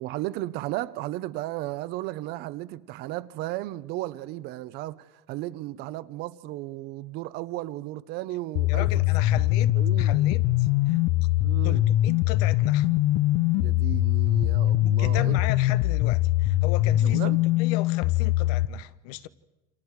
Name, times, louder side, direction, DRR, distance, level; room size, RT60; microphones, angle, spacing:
voice 1, 0.0-8.9 9.7-10.1 11.4-11.8 13.6-15.4 17.0-17.4, right 16 dB, 55° right, 0.8 m, -34 dB
sound 1, 8.6-18.7, left 15 dB, 55° left, 0.7 m, -22 dB
voice 2, 8.7-11.0 11.6-12.9 14.8-19.3, left 16 dB, 75° left, 1.0 m, -36 dB
29.0 x 26.5 x 4.8 m
cardioid pair, 150°, 20 cm